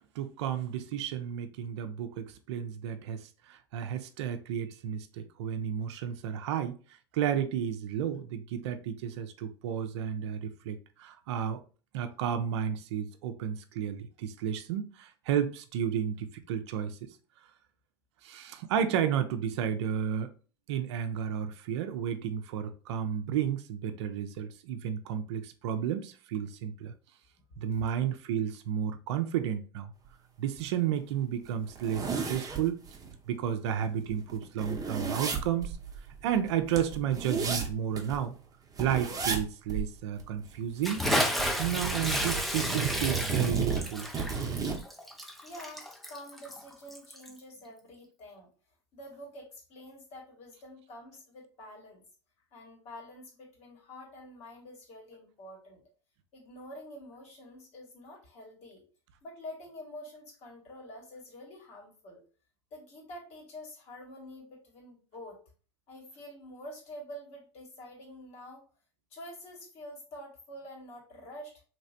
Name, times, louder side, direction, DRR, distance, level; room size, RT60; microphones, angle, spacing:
voice 1, 0.2-6.8 7.1-11.6 11.9-17.1 18.2-20.3 20.7-26.9 27.6-29.9 30.4-32.8 33.3-35.8 36.2-38.3 38.8-41.0 41.6-44.1, right 9 dB, 75° right, 0.5 m, -32 dB
sound 1, 30.6-30.7 31.1-31.2 31.5-33.1 33.5-33.6 33.8-38.2 38.8-39.4 39.7-39.9 40.2-41.1 41.4-44.8, right 5 dB, 25° right, 0.8 m, -33 dB
Bathtub (filling or washing) / Splash splatter, 40.8-47.4, equal, ahead, 0.5 m, -32 dB
voice 2, 45.4-48.5 48.9-52.0 52.5-55.8 56.3-58.9 59.2-62.3 62.7-65.4 65.9-68.6 69.1-71.6, left 1 dB, 50° left, 1.8 m, -47 dB
3.2 x 2.9 x 2.7 m
hypercardioid pair, 90°, 15 cm